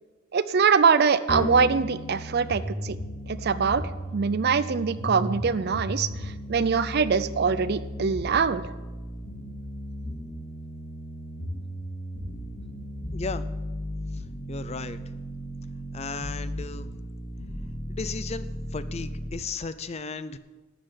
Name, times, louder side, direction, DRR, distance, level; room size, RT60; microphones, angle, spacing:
voice 1, 0.3-3.0 3.3-3.8 4.1-6.1 6.5-8.6, right 5 dB, 50° right, 14 dB, 0.5 m, -23 dB
sound 1, 1.3-19.3, equal, 80° left, 3.8 m, -35 dB
voice 2, 13.1-13.5 14.5-15.0 15.9-16.9 18.0-18.5 18.7-20.4, left 4 dB, 30° left, 13 dB, 0.5 m, -34 dB
12.0 x 7.8 x 7.1 m, 1.2 s
head